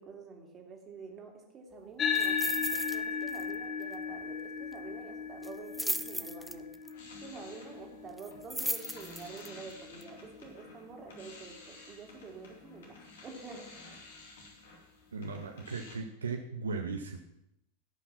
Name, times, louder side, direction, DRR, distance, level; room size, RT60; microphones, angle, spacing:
voice 1, 0.0-6.7 7.2-13.7, right 4 dB, 25° right, 1 dB, 2.6 m, -48 dB
sound 1, 2.0-10.7, left 6 dB, 25° left, 0.9 m, -37 dB
sound 2, 2.1-3.0 3.3-3.5 3.8-3.9 5.4-6.9 8.2-9.5 10.0-10.1, equal, ahead, 0.5 m, -36 dB
sound 3, 6.6-16.0, left 2 dB, 60° left, 2.6 m, -52 dB
voice 2, 15.1-17.2, right 4 dB, 70° right, 4 dB, 0.9 m, -37 dB
16.5 x 5.9 x 5.9 m, 0.83 s
figure-of-eight pair, 90°, 0 cm